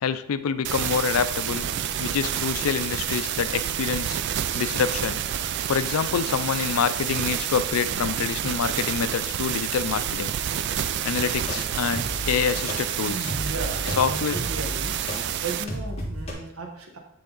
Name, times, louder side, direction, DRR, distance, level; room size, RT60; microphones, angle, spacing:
voice 1, 0.0-1.7 2.0-4.2 4.5-5.2 5.7-10.4 11.0-13.3 14.0-14.4, left 6 dB, 90° left, 13 dB, 0.4 m, -26 dB
sound 1, 0.6-15.6, right 9 dB, 55° right, 0.3 m, -29 dB
sound 2, 11.3-15.2 15.7-16.3, equal, 30° left, 1.6 m, -33 dB
voice 2, 13.0-15.0 15.4-17.0, right 3 dB, 80° right, 2 dB, 1.1 m, -35 dB
9.2 x 3.5 x 3.8 m, 0.71 s
head